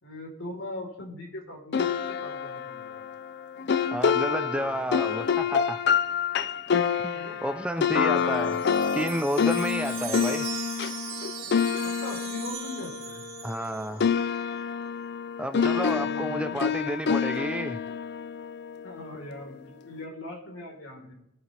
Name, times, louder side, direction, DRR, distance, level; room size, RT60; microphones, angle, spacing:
voice 1, 0.0-3.0 4.1-4.8 7.1-7.4 10.0-10.3 11.8-13.2 15.7-17.0 18.8-21.1, left 1 dB, 70° left, 0 dB, 3.9 m, -41 dB
sound 1, 1.7-13.7 14.0-19.2, left 7 dB, 50° left, 0.4 m, -27 dB
voice 2, 3.9-5.8 7.0-8.6 8.9-10.5 13.4-14.1 15.4-17.8, right 1 dB, 5° right, 9 dB, 0.5 m, -31 dB
Wind chime, 7.9-14.1, right 9 dB, 75° right, 2.4 m, -40 dB
21.5 x 9.1 x 3.4 m, 0.83 s
head